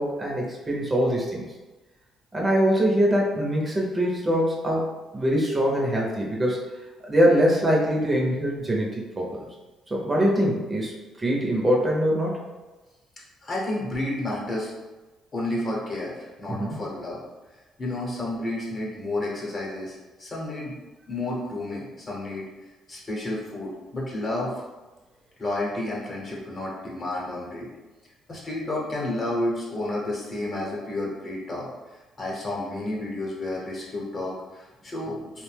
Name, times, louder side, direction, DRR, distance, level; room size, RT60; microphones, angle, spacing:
voice 1, 0.0-1.5 2.3-4.9 5.1-6.6 7.0-9.4 9.9-12.4 16.6-16.7, equal, 20° right, -3 dB, 0.6 m, -23 dB
voice 2, 13.4-14.7 15.3-17.2 17.8-20.7 21.1-22.4 22.9-24.5 25.4-27.7 28.3-31.7 32.2-35.4, left 1 dB, 35° left, -4 dB, 0.9 m, -31 dB
2.7 x 2.1 x 3.2 m, 1.2 s
cardioid pair, 95°, 0 cm